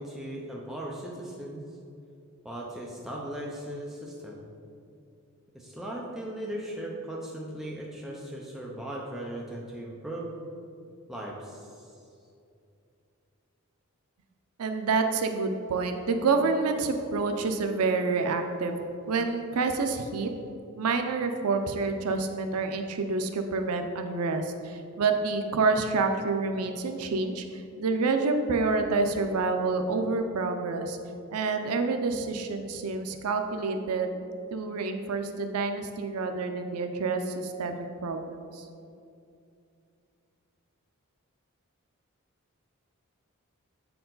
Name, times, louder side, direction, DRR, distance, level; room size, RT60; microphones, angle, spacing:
voice 1, 0.0-1.6 2.4-4.4 5.5-10.3 11.1-11.9, right 1 dB, ahead, -4 dB, 0.6 m, -38 dB
voice 2, 14.6-20.3 20.8-31.0 31.3-34.1 34.5-38.7, right 4 dB, 85° right, 6 dB, 0.5 m, -28 dB
7.4 x 4.6 x 3.9 m, 2.5 s
head